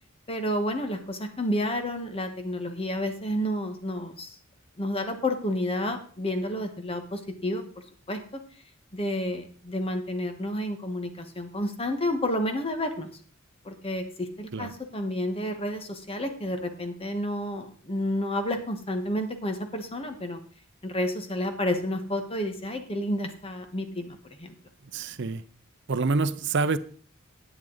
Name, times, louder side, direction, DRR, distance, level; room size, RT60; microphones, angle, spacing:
voice 1, 0.3-4.3 4.8-7.6 8.1-8.4 8.9-13.1 13.6-20.4 20.8-24.5, left 1 dB, 30° left, 1.3 m, -30 dB
voice 2, 24.9-25.4 25.9-26.8, right 3 dB, 60° right, 0.7 m, -26 dB
10.5 x 9.2 x 3.9 m
head